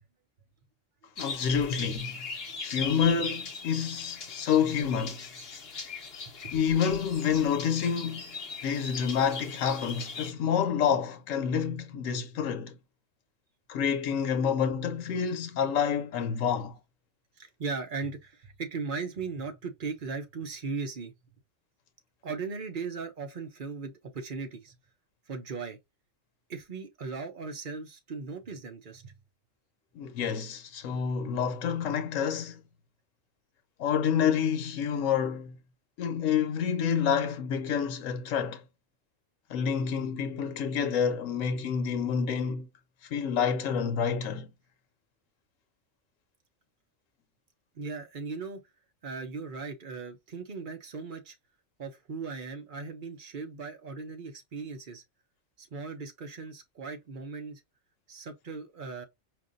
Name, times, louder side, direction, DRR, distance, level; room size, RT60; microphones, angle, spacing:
voice 1, 1.2-2.2 2.6-5.2 6.5-8.3 8.6-12.8 13.7-16.8 29.9-32.6 33.8-35.5 36.0-38.6 39.5-42.7 43.1-44.5, left 7 dB, 85° left, 1.1 m, -28 dB
sound 1, 1.2-10.3, left 5 dB, 55° left, 1.1 m, -39 dB
voice 2, 17.4-21.1 22.2-24.7 25.3-25.8 26.5-29.1 47.7-48.6 49.0-51.4 51.8-55.0 55.6-57.6 58.1-59.0, right 4 dB, 45° right, 0.8 m, -38 dB
4.5 x 2.6 x 2.5 m
omnidirectional pair, 1.3 m